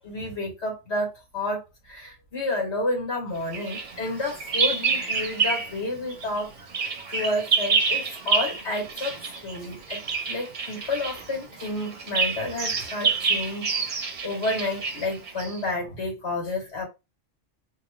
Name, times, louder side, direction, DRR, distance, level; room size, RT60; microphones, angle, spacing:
voice 1, 0.0-6.5 7.1-10.0 10.3-16.8, left 2 dB, 55° left, 2.4 m, -30 dB
Bird vocalization bird call bird song, 3.5-5.8 6.1-15.6, right 5 dB, 45° right, 0.7 m, -28 dB
3.7 x 2.6 x 3.2 m
omnidirectional pair, 1.3 m